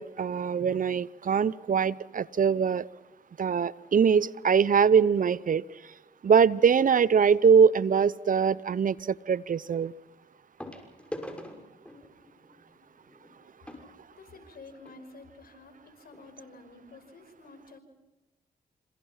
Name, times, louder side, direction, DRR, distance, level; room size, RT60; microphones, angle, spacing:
voice 1, 0.0-2.9 3.4-5.6 6.2-9.9, right 6 dB, 50° right, 20 dB, 0.9 m, -23 dB
sound 1, 7.1-7.3 9.0-9.1 10.6-15.0 15.8-15.9 16.1-16.3 16.8-16.9, left 1 dB, 5° left, 6.1 m, -45 dB
voice 2, 14.1-17.8, left 3 dB, 60° left, 8 dB, 5.5 m, -50 dB
27.5 x 26.5 x 5.8 m, 1.0 s
hypercardioid pair, 40°, 17 cm